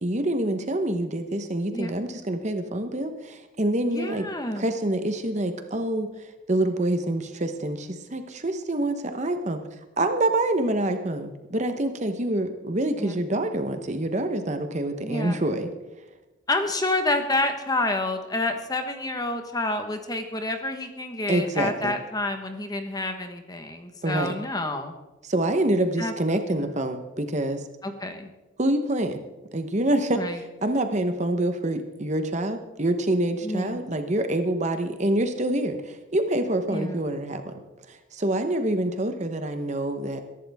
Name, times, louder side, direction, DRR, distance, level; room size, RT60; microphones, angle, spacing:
voice 1, 0.0-4.2 4.5-9.6 10.0-15.7 21.3-21.9 24.0-24.3 25.2-27.7 28.6-29.2 29.5-30.2 30.6-37.5 37.9-40.2, right 1 dB, 35° right, 7 dB, 1.0 m, -26 dB
voice 2, 3.9-4.7 13.0-13.1 15.0-15.4 16.5-24.9 26.0-26.1 26.5-26.7 27.8-28.3 30.2-30.4 33.4-33.9 36.7-37.1, left 2 dB, 20° left, 6 dB, 1.2 m, -29 dB
21.5 x 11.5 x 3.5 m, 1.1 s
head